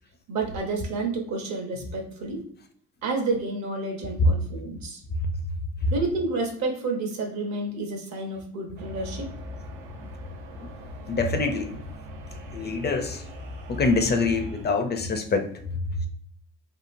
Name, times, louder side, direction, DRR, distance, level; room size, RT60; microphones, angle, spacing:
voice 1, 0.3-2.4 3.0-5.0 5.9-9.3, right 3 dB, 65° right, 0.9 m, -30 dB
sound 1, 8.8-14.7, left 1 dB, 85° right, 0.5 m, -39 dB
voice 2, 11.1-11.9 12.5-13.2 13.7-15.7, left 3 dB, 35° left, 0.4 m, -25 dB
2.8 x 2.4 x 2.5 m
supercardioid pair, 70°, 30 cm